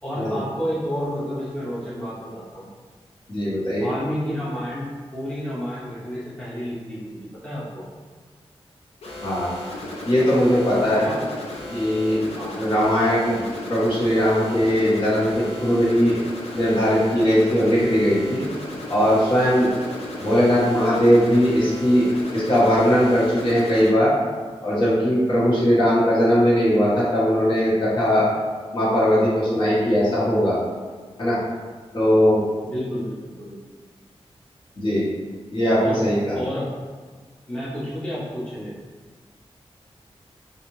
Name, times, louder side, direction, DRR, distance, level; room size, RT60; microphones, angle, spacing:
voice 1, 0.0-2.7 3.7-4.9 5.1-7.9 11.0-11.3 12.4-12.5 32.6-33.6 35.8-36.0 36.3-36.8 37.5-38.7, equal, 10° left, -10 dB, 0.8 m, -30 dB
voice 2, 3.3-3.9 9.2-9.5 10.0-11.1 11.7-12.2 12.5-16.2 16.5-18.4 18.9-19.7 20.2-22.1 22.3-24.1 24.6-28.3 28.7-30.6 31.2-31.4 31.9-32.4 34.8-35.1 35.5-36.3, equal, 55° left, -9 dB, 1.3 m, -19 dB
sound 1, 9.0-23.9, left 1 dB, 75° left, 0.6 m, -35 dB
3.9 x 2.5 x 3.2 m, 1.5 s
wide cardioid pair, 155°, 10 cm